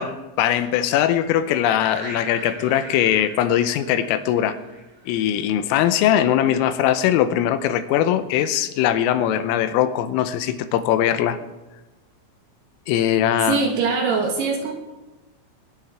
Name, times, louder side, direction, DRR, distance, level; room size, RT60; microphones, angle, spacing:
voice 1, 0.0-4.6 5.1-11.4 12.9-13.6, left 10 dB, 90° left, 11 dB, 3.4 m, -21 dB
sound 1, 1.6-5.5, right 1 dB, 40° right, 6.4 m, -39 dB
voice 2, 13.4-14.7, right 4 dB, 70° right, 1 dB, 2.8 m, -22 dB
21.5 x 10.5 x 3.6 m, 1.1 s
omnidirectional pair, 5.9 m